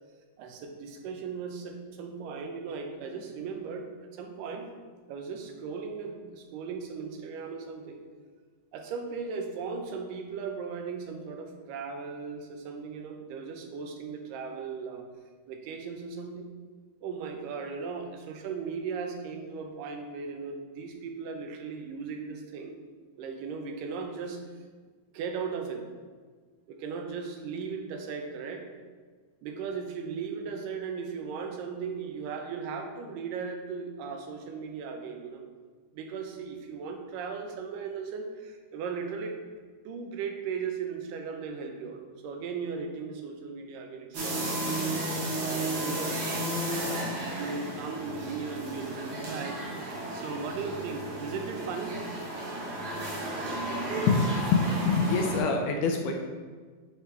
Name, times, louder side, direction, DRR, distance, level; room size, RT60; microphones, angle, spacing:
voice 1, 0.4-3.9 4.1-4.7 5.1-8.0 8.7-15.1 15.5-16.5 17.0-22.8 23.2-24.4 25.1-25.9 26.7-28.6 29.4-35.4 35.9-39.4 39.9-44.6 45.3-46.3 46.9-49.6 50.1-52.0, right 5 dB, 85° right, 4 dB, 2.2 m, -37 dB
sound 1, 44.1-55.4, right 1 dB, 60° right, 1.4 m, -33 dB
voice 2, 54.1-56.1, left 4 dB, 80° left, 3 dB, 1.9 m, -25 dB
9.8 x 3.3 x 3.1 m, 1.5 s
omnidirectional pair, 3.9 m